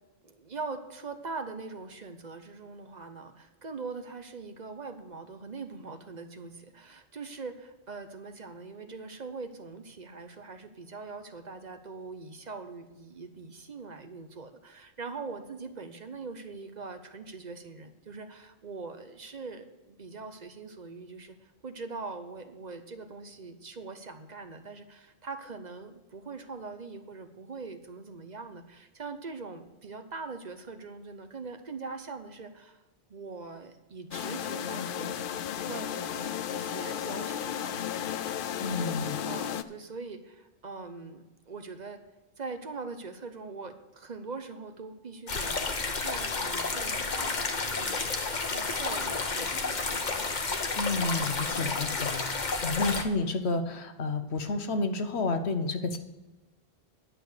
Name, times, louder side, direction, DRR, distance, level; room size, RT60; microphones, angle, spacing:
voice 1, 0.2-32.8 33.1-35.2 35.6-38.1 38.5-42.0 42.4-50.1 51.2-51.6, right 4 dB, 45° right, 8 dB, 0.9 m, -42 dB
sound 1, 34.1-39.6, left 9 dB, 60° left, 0.7 m, -34 dB
voice 2, 38.6-39.2 50.7-56.0, left 3 dB, 85° left, 8 dB, 1.3 m, -30 dB
sound 2, 45.3-53.0, left 4 dB, 45° left, 1.1 m, -31 dB
10.5 x 6.7 x 6.5 m, 1.1 s
omnidirectional pair, 1.1 m